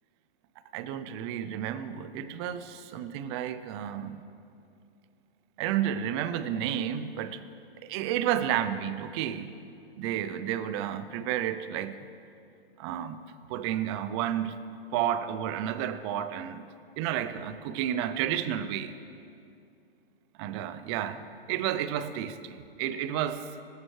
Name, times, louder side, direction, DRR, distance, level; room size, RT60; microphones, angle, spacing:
voice 1, 0.7-4.2 5.6-7.5 7.8-9.5 10.0-12.0 12.8-13.2 13.5-14.5 14.9-16.6 17.0-18.9 20.4-23.4, right 10 dB, 30° right, 12 dB, 0.5 m, -31 dB
18.5 x 9.5 x 3.2 m, 2.5 s
hypercardioid pair, 140°, 30 cm